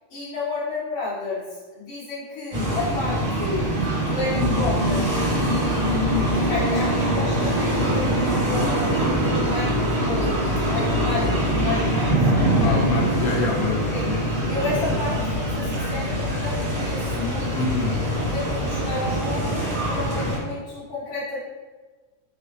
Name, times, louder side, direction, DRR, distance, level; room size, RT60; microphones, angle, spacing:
voice 1, 0.1-3.7 4.0-12.3 13.9-14.1 14.5-17.5 17.9-21.4, left 3 dB, 50° left, -9 dB, 2.0 m, -31 dB
sound 1, 2.5-20.4, right 1 dB, 55° right, 1.1 m, -23 dB
voice 2, 12.6-14.9 17.5-17.9 20.1-20.3, left 3 dB, 85° left, -3 dB, 1.4 m, -26 dB
5.3 x 2.4 x 3.2 m, 1.3 s
omnidirectional pair, 3.4 m